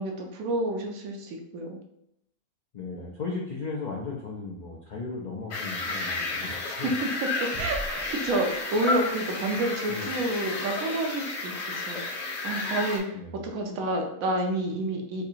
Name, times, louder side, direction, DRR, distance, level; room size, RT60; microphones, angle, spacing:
voice 1, 0.0-1.8 6.7-7.1 7.6-15.3, right 2 dB, 75° right, 2 dB, 1.1 m, -29 dB
voice 2, 2.7-6.9 9.9-10.1 13.1-13.4, left 3 dB, 70° left, -3 dB, 0.4 m, -36 dB
sound 1, 5.5-13.0, left 3 dB, 55° left, 1.0 m, -32 dB
sound 2, 7.5-9.3, right 1 dB, 40° right, 0.4 m, -40 dB
4.5 x 2.8 x 2.4 m, 0.78 s
omnidirectional pair, 1.5 m